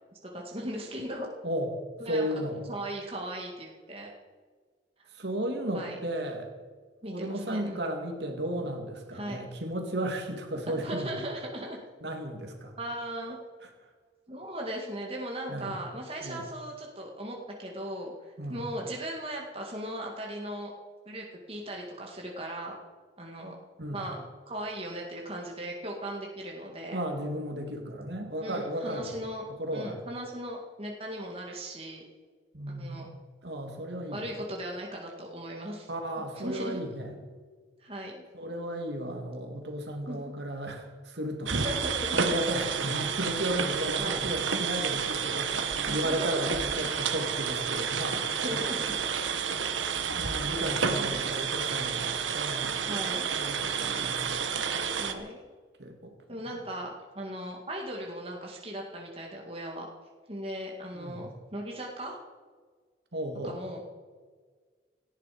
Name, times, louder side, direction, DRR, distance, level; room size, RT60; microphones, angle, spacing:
voice 1, 0.3-1.3 2.0-2.2 2.7-4.1 5.0-5.1 5.7-6.0 7.0-7.8 9.1-9.5 10.7-11.8 12.8-13.4 14.3-18.1 18.5-20.7 21.1-22.8 23.2-23.5 23.9-27.0 28.4-29.4 29.7-32.0 32.8-33.1 34.1-35.9 36.4-36.8 37.8-38.1 40.1-40.2 41.5-42.2 44.0-44.2 45.9-46.5 48.4-48.8 51.0-51.2 52.9-53.3 55.0-55.4 56.3-59.9 60.3-62.2 63.4-63.8, right 1 dB, 30° right, -1 dB, 2.1 m, -38 dB
voice 2, 2.0-2.6 5.1-6.5 7.1-11.2 12.0-12.8 15.5-15.8 16.2-16.4 18.4-18.6 23.8-24.0 26.9-29.2 29.5-30.1 32.5-33.1 33.4-34.2 35.9-37.1 38.3-48.6 49.4-49.5 50.2-52.9 53.3-54.7 55.8-56.1 60.9-61.3 63.1-63.6, right 1 dB, 60° right, 3 dB, 2.7 m, -34 dB
sound 1, 41.5-55.1, right 6 dB, 85° right, 1.4 m, -30 dB
18.0 x 14.0 x 5.2 m, 1.5 s
head